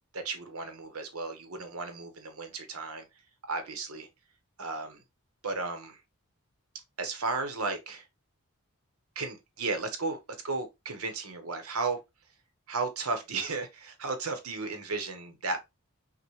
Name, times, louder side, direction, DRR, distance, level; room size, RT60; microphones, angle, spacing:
voice 1, 0.1-3.0 3.5-4.1 4.6-5.0 5.4-6.0 7.0-8.0 9.1-10.2 10.4-12.0 12.7-15.7, right 3 dB, 80° right, 1.1 m, -34 dB
5.9 x 2.4 x 3.1 m
head